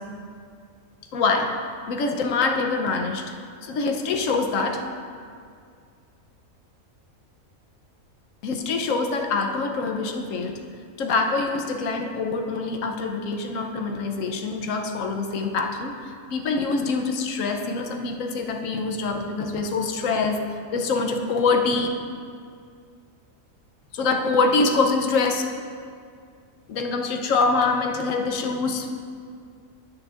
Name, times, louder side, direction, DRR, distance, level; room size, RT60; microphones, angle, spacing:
voice 1, 1.1-1.5 1.9-3.2 3.6-4.8 8.4-10.6 11.0-15.9 16.3-20.4 20.7-21.9 23.9-25.4 26.7-28.9, left 4 dB, 70° left, 3 dB, 1.1 m, -24 dB
10.5 x 8.8 x 2.5 m, 2.2 s
omnidirectional pair, 1.5 m